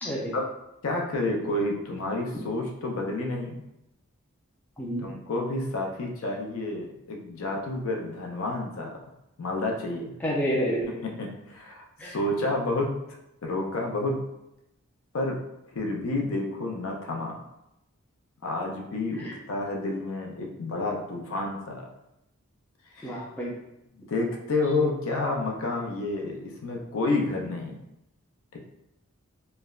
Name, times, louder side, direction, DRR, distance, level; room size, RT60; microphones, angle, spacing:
voice 1, 0.0-0.3 4.8-5.1 10.2-10.9 12.0-12.1 19.2-19.3 23.0-23.5, equal, 5° left, -5 dB, 0.4 m, -29 dB
voice 2, 0.8-3.6 5.0-9.0 9.4-10.2 10.9-12.9 13.4-14.2 15.1-15.4 15.7-17.4 18.4-21.9 22.9-23.2 24.0-27.8 28.5-28.6, left 2 dB, 70° left, 0 dB, 0.5 m, -30 dB
3.2 x 2.0 x 2.3 m, 0.86 s
head